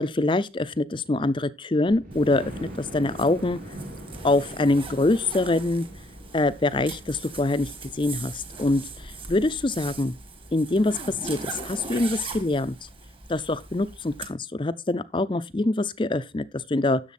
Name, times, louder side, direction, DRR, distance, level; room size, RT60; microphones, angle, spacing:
voice 1, 0.0-3.6 4.2-5.9 6.3-10.2 10.5-11.0 11.2-12.8 13.3-17.0, left 2 dB, 25° left, 0.5 m, -24 dB
Thunder, 1.9-11.6 12.2-12.3 12.7-12.8 13.0-13.1, right 1 dB, 50° right, 5.3 m, -44 dB
Zipper (clothing), 2.1-14.3, right 3 dB, 30° right, 1.5 m, -40 dB
10.5 x 7.2 x 4.2 m
head